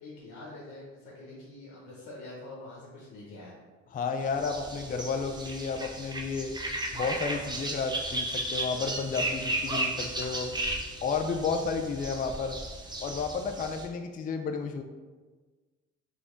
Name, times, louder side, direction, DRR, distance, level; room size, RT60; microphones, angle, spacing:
voice 1, 0.0-3.5, left 2 dB, 80° left, -5 dB, 1.1 m, -45 dB
voice 2, 3.9-6.5 6.9-10.5 11.0-12.6 13.0-14.8, left 5 dB, 30° left, 5 dB, 0.3 m, -32 dB
sound 1, 4.3-13.9, right 1 dB, 15° right, 0.6 m, -35 dB
3.6 x 3.4 x 3.8 m, 1.4 s
cardioid pair, 90°, 30 cm